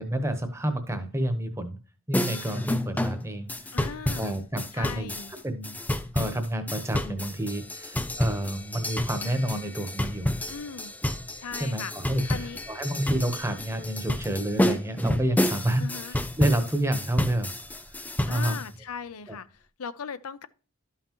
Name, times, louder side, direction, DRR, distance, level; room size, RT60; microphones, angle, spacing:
voice 1, 0.0-1.8 2.1-5.1 5.4-5.8 6.1-10.3 11.6-17.8 18.3-18.6 19.3-19.4, right 1 dB, 10° right, 1.0 m, -29 dB
sound 1, 2.1-18.7, left 1 dB, 5° left, 0.4 m, -30 dB
voice 2, 3.7-4.3 4.7-5.3 10.5-10.9 11.3-11.9 12.2-12.6 15.8-16.2 18.3-20.5, left 6 dB, 80° left, 0.6 m, -38 dB
12.5 x 5.7 x 3.0 m
head